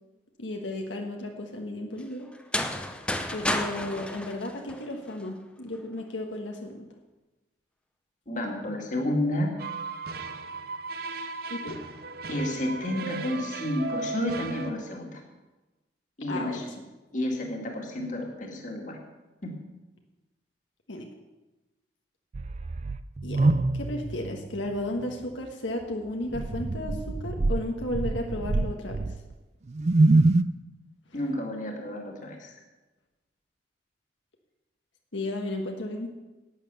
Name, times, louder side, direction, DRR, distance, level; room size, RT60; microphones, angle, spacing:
voice 1, 0.4-2.3 3.3-6.8 11.5-11.8 16.3-16.7 20.9-21.1 23.2-29.0 31.1-31.2 35.1-36.1, left 1 dB, 85° left, 2 dB, 1.4 m, -34 dB
sound 1, 2.3-5.2, left 1 dB, 5° left, 0.7 m, -31 dB
voice 2, 8.3-9.5 12.3-15.2 16.2-16.6 17.1-19.0 19.4-19.5 31.1-32.5, left 1 dB, 40° left, 1 dB, 2.0 m, -30 dB
sound 2, 9.6-14.7, right 4 dB, 55° right, 0.8 m, -36 dB
sound 3, 22.3-24.8 25.1-25.2 26.3-29.3 29.7-30.4, right 2 dB, 35° right, 0.4 m, -25 dB
12.0 x 9.2 x 6.8 m, 1.1 s
head